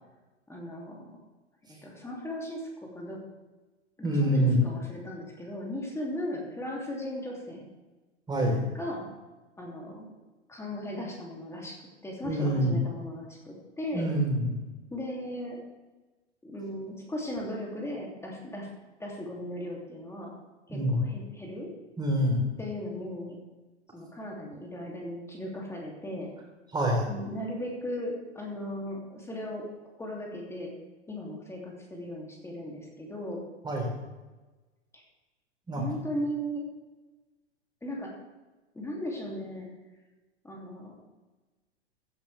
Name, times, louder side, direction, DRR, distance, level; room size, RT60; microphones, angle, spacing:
voice 1, 0.5-1.2 1.7-3.2 4.0-7.7 8.7-9.1 9.6-10.1 10.5-11.8 12.0-14.1 14.9-15.6 16.4-18.7 19.0-20.3 20.7-21.7 22.6-23.4 23.9-26.3 27.1-29.7 30.0-30.8 31.1-33.4 34.9-35.0 35.8-36.7 37.8-38.1 38.7-39.7 40.4-40.9, equal, 5° left, -2 dB, 2.8 m, -37 dB
voice 2, 4.0-4.6 8.3-8.6 12.2-12.7 13.9-14.5 20.7-21.0 22.0-22.5 26.7-27.1 33.6-33.9 35.7-35.8, right 1 dB, 10° right, -1 dB, 4.1 m, -26 dB
16.0 x 10.5 x 3.5 m, 1.2 s
figure-of-eight pair, 100°, 35 cm